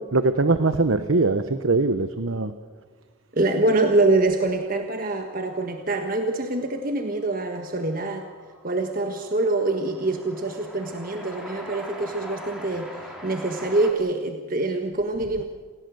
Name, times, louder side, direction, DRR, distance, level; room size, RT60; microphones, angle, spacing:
voice 1, 0.1-2.5, right 3 dB, 90° right, 11 dB, 1.0 m, -21 dB
voice 2, 3.3-8.3 8.6-12.9 13.2-15.4, right 2 dB, 45° right, 5 dB, 1.5 m, -25 dB
Train, 6.5-6.6 6.8-13.9, equal, 5° right, 3.8 m, -42 dB
28.5 x 16.5 x 7.9 m, 1.5 s
head